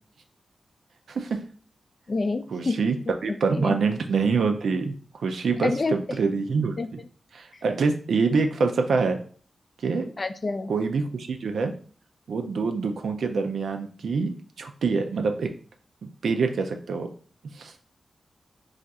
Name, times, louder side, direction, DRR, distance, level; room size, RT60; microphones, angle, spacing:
voice 1, 1.1-1.4 2.5-3.0 3.2-7.0 7.3-9.2 9.8-10.1 10.7-11.7 12.3-15.5 16.2-17.1 17.5-17.7, right 4 dB, 80° right, 5 dB, 0.5 m, -25 dB
voice 2, 2.1-2.9 3.5-3.7 5.6-5.9 6.8-6.9 10.2-10.7, left 3 dB, 50° left, 9 dB, 0.4 m, -27 dB
2.5 x 2.4 x 4.1 m, 0.44 s
cardioid pair, 45°, 0 cm